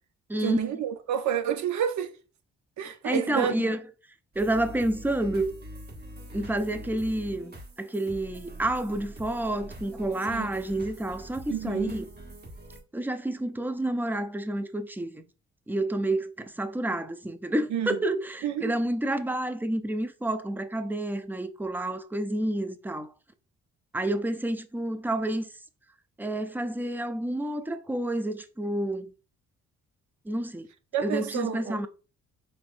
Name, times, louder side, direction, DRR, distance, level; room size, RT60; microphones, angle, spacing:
voice 1, 0.4-2.1 2.8-3.7 10.3-10.5 11.5-11.9 17.7-18.0 18.4-18.7 30.9-31.8, right 8 dB, 70° right, 0.7 m, -29 dB
voice 2, 2.8-3.8 4.4-5.5 6.3-12.1 12.9-15.2 15.7-23.1 23.9-25.5 26.2-29.1 30.3-30.7 31.0-31.9, right 1 dB, 5° right, 0.4 m, -29 dB
sound 1, 4.3-12.8, right 1 dB, 35° right, 1.3 m, -44 dB
4.4 x 3.2 x 2.5 m
cardioid pair, 90°, 30 cm